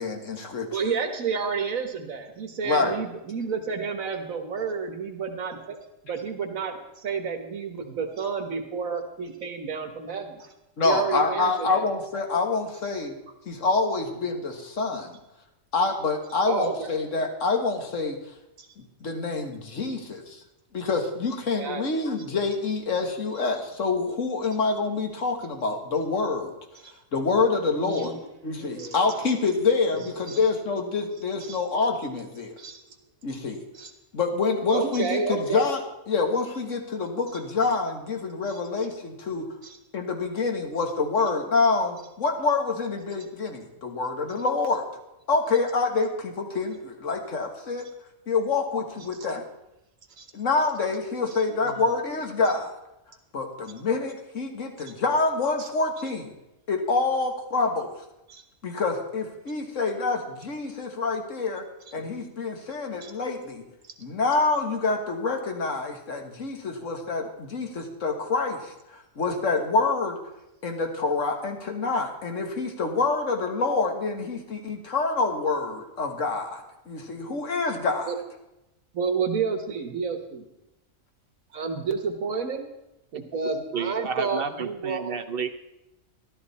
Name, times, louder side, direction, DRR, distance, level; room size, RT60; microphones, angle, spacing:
voice 1, 0.0-0.8 2.6-3.0 10.8-13.2 13.5-15.2 15.7-18.2 18.8-20.4 20.7-26.5 27.1-32.6 33.2-33.6 34.1-39.4 39.9-44.8 45.3-47.8 48.3-49.4 50.3-52.7 53.3-56.3 56.7-57.9 58.6-61.6 61.9-63.6 64.0-70.2 70.6-78.1, left 4 dB, 70° left, 3 dB, 2.0 m, -26 dB
voice 2, 0.7-5.8 6.0-10.5 10.8-11.9 16.5-16.9 18.6-18.7 21.6-22.1 26.8-26.9 27.7-28.2 28.5-29.1 30.3-30.4 31.4-31.6 32.6-32.8 33.7-33.9 34.7-35.7 38.5-38.6 39.6-39.8 50.2-50.3 51.3-51.8 54.9-55.0 55.6-55.7 58.3-58.4 62.0-62.1 63.0-63.1 78.1-78.2 78.9-80.5 81.5-82.6 83.1-85.1, right 5 dB, 85° right, 6 dB, 1.7 m, -30 dB
voice 3, 83.7-85.5, right 6 dB, 50° right, 10 dB, 0.9 m, -31 dB
13.5 x 12.0 x 4.2 m, 0.91 s
omnidirectional pair, 1.4 m